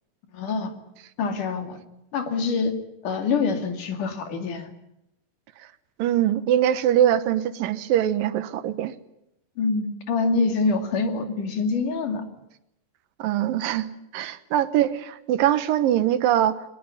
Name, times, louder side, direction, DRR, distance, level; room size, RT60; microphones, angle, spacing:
voice 1, 0.3-0.7 1.2-1.8 2.1-2.7 3.0-4.7 9.6-12.2, left 4 dB, 65° left, 7 dB, 3.9 m, -25 dB
voice 2, 6.0-8.9 13.2-16.7, right 11 dB, 85° right, 14 dB, 2.8 m, -22 dB
21.5 x 21.0 x 9.8 m, 0.84 s
omnidirectional pair, 4.0 m